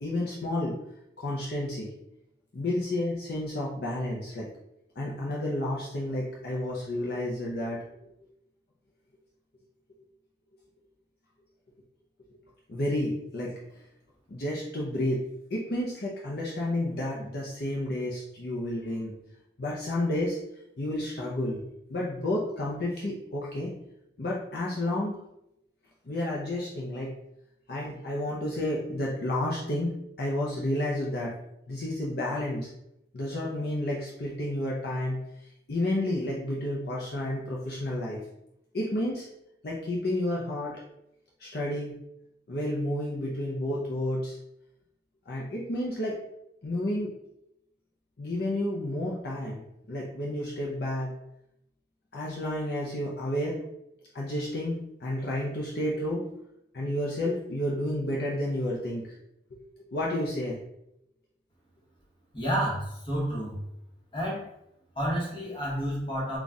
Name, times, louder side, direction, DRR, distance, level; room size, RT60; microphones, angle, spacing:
voice 1, 0.0-0.8 1.2-1.9 2.5-4.5 5.0-7.8 12.7-13.8 14.3-15.2 15.5-19.1 19.6-20.4 20.8-21.6 21.9-23.7 24.2-25.2 26.1-27.1 27.7-31.3 31.7-32.7 33.1-38.2 38.7-39.3 39.6-40.8 41.4-42.0 42.5-44.4 45.3-46.1 46.6-47.1 48.2-49.6 49.9-51.1 52.1-53.6 54.1-56.2 56.7-59.1 59.5-59.6 59.9-60.6, left 1 dB, 55° left, -4 dB, 0.6 m, -31 dB
voice 2, 62.3-63.6 64.1-64.5 64.9-66.4, equal, 30° left, -4 dB, 1.2 m, -30 dB
4.0 x 2.4 x 3.5 m, 0.82 s
head